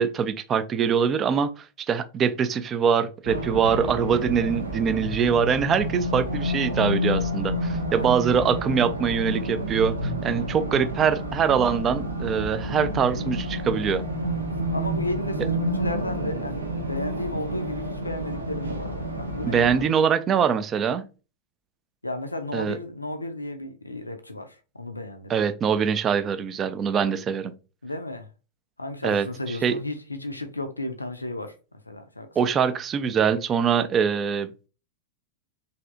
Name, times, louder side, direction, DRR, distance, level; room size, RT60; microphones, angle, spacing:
voice 1, 0.0-14.0 19.4-21.0 22.5-22.8 25.3-27.5 29.0-29.8 32.4-34.7, right 7 dB, 25° right, 0.3 m, -23 dB
Race car auto racing, 3.2-19.8, equal, 75° right, 0.6 m, -29 dB
voice 2, 7.8-8.5 14.2-14.4 14.7-19.7 22.0-25.4 27.8-28.3 28.8-31.6 31.9-32.3, left 2 dB, 85° left, 0.4 m, -34 dB
3.2 x 2.6 x 2.5 m
figure-of-eight pair, 90°, 0 cm